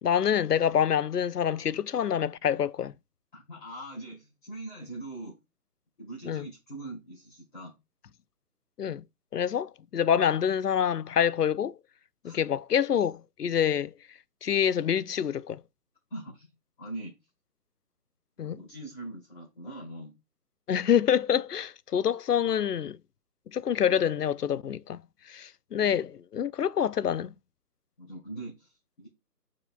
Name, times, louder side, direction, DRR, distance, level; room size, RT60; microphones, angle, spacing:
voice 1, 0.0-2.9 6.3-6.5 8.8-9.0 9.3-11.7 12.2-13.9 14.4-15.6 18.4-18.6 20.7-23.0 23.5-25.0 25.3-27.3, left 8 dB, 75° left, 0.5 m, -26 dB
voice 2, 3.3-5.4 6.0-7.7 12.2-12.4 16.1-16.5 16.8-17.1 18.4-20.1 25.7-26.0 28.0-29.1, right 2 dB, 30° left, 2.8 m, -42 dB
9.4 x 4.8 x 2.3 m
figure-of-eight pair, 155°, 47 cm